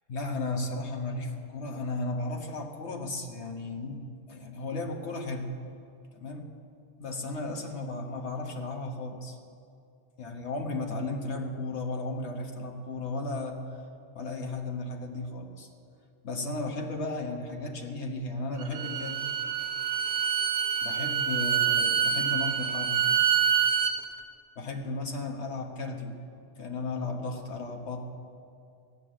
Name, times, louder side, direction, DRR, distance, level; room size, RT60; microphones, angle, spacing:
voice 1, 0.1-5.5 6.1-6.5 7.0-9.4 10.2-13.6 14.1-15.7 16.2-19.3 20.8-23.0 24.6-26.2 26.6-28.0, left 2 dB, 85° left, 3 dB, 1.6 m, -35 dB
Bowed string instrument, 18.6-23.9, right 8 dB, 70° right, 1.1 m, -26 dB
15.5 x 9.2 x 7.6 m, 2.4 s
omnidirectional pair, 1.1 m